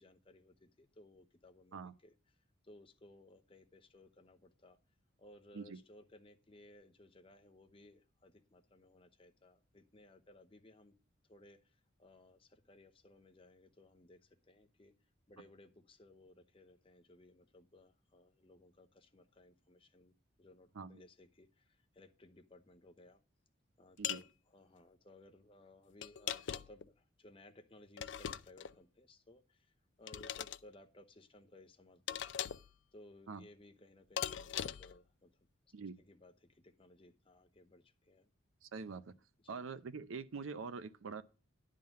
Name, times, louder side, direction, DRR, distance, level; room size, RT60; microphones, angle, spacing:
voice 1, 0.0-2.4 2.6-4.8 5.2-10.9 11.3-14.9 15.3-23.2 23.8-32.4 32.9-35.4 35.8-38.3 39.4-39.6, left 1 dB, 25° left, 0.8 m, -61 dB
sound 1, 24.0-24.3 26.0-26.9 28.0-28.7 30.1-30.6 32.1-32.7 34.2-35.0, left 9 dB, 60° left, 0.4 m, -40 dB
voice 2, 38.6-39.1 39.5-41.2, right 5 dB, 85° right, 0.6 m, -44 dB
10.5 x 3.8 x 7.5 m
head